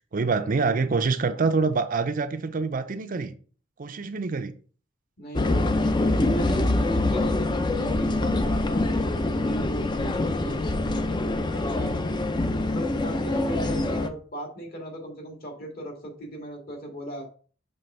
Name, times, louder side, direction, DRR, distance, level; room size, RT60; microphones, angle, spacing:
voice 1, 0.1-3.3 3.8-4.5 10.4-10.6, right 4 dB, 45° right, 0.5 m, -26 dB
voice 2, 5.2-8.8 9.3-12.0 12.6-17.3, equal, 50° left, 2.0 m, -37 dB
sound 1, 5.3-14.1, left 2 dB, 20° left, 0.5 m, -25 dB
6.9 x 3.4 x 5.5 m
head